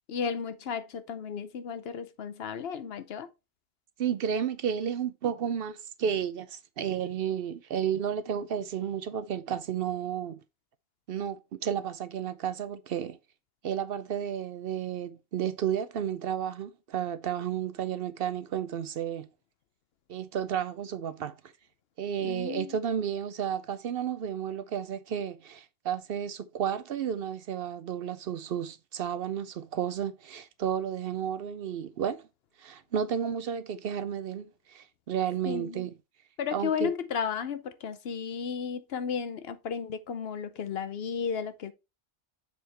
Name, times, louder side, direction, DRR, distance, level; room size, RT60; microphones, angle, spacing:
voice 1, 0.1-3.3 22.2-22.8 35.4-35.9 36.4-41.7, left 7 dB, 65° left, 0.9 m, -34 dB
voice 2, 4.0-10.4 11.1-13.2 13.6-19.3 20.1-21.4 22.0-32.2 32.6-35.9 36.5-36.9, right 8 dB, 65° right, 0.7 m, -32 dB
7.0 x 4.5 x 3.3 m
omnidirectional pair, 1.2 m